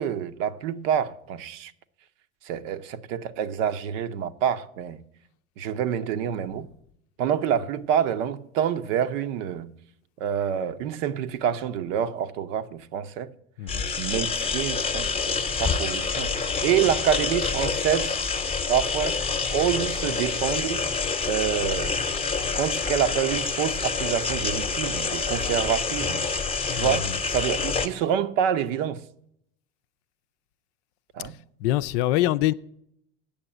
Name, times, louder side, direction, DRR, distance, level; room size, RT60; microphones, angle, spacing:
voice 1, 0.0-1.7 2.4-5.0 5.6-6.7 7.2-9.7 10.2-13.3 14.0-18.2 18.7-19.2 19.5-20.9 21.3-22.0 22.5-26.3 26.7-29.0 31.1-31.4, right 9 dB, 60° right, 0.9 m, -27 dB
sound 1, 13.7-27.9, left 4 dB, 15° left, 0.9 m, -27 dB
voice 2, 31.6-32.5, left 15 dB, 55° left, 0.5 m, -24 dB
8.8 x 6.9 x 8.7 m
hypercardioid pair, 85°, 42 cm